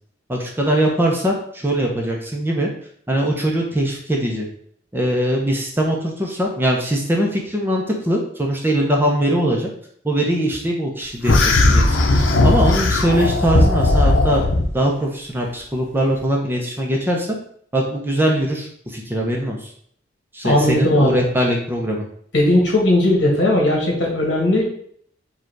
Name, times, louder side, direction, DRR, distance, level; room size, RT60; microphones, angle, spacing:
voice 1, 0.3-2.7 3.1-4.5 4.9-9.7 10.0-12.0 12.4-14.5 14.7-17.3 17.7-19.7 20.3-22.1, right 1 dB, 10° right, 0 dB, 0.6 m, -21 dB
sound 1, 11.3-14.7, left 2 dB, 85° left, 0.7 m, -16 dB
voice 2, 20.4-21.2 22.3-24.7, left 1 dB, 65° left, -1 dB, 1.5 m, -17 dB
4.9 x 2.4 x 4.5 m, 0.63 s
head